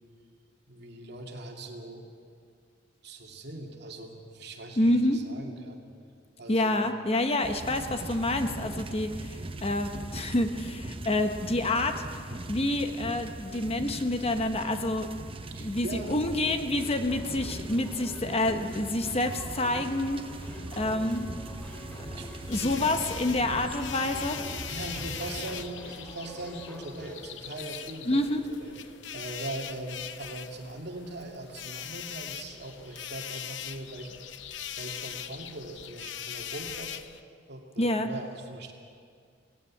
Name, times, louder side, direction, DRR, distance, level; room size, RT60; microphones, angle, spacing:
voice 1, 0.7-2.1 3.0-5.8 6.4-6.8 15.5-16.2 21.9-22.9 24.7-28.7 29.1-34.1 34.8-36.9 37.5-38.7, right 2 dB, 60° right, 1 dB, 2.5 m, -41 dB
voice 2, 4.8-5.2 6.5-15.1 15.6-20.2 20.5-21.3 22.5-24.4 28.1-28.4 37.8-38.1, left 1 dB, 30° left, 7 dB, 1.1 m, -28 dB
sound 1, 7.4-25.7, right 1 dB, 30° right, 0.9 m, -40 dB
sound 2, 16.7-27.2, equal, 5° left, 3.0 m, -47 dB
sound 3, 22.4-37.2, left 9 dB, 70° left, 0.8 m, -41 dB
18.0 x 16.5 x 8.6 m, 2.2 s
head